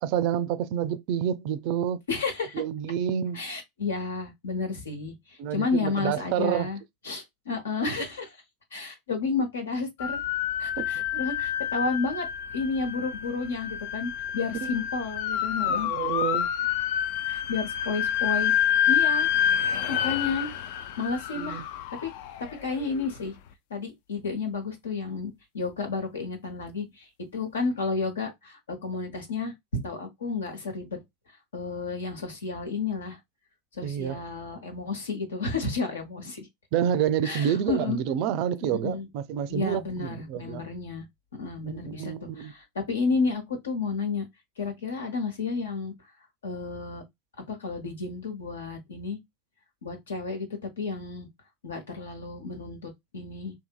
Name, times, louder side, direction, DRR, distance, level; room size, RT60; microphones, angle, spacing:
voice 1, 0.0-2.0 2.5-3.4 5.4-6.7 10.8-10.9 11.1-11.3 14.6-14.7 15.6-16.5 21.3-21.7 33.8-34.2 36.7-40.6 41.6-42.5, right 9 dB, 55° right, 0.3 m, -28 dB
voice 2, 2.1-2.6 3.3-6.8 7.0-8.4 8.7-10.2 10.6-12.3 12.5-15.9 17.3-18.5 18.9-19.3 19.9-20.5 20.9-21.7 22.0-22.1 22.6-23.4 23.7-31.0 31.5-33.2 33.7-36.4 37.2-38.0 38.6-39.1 39.5-41.0 41.4-44.2 44.6-45.9 46.4-47.0 47.5-49.2 49.8-51.3 51.6-53.5, left 4 dB, 80° left, 0.9 m, -31 dB
sound 1, 10.0-23.1, left 9 dB, 60° left, 0.3 m, -28 dB
2.7 x 2.6 x 2.2 m
hypercardioid pair, 85°, 0 cm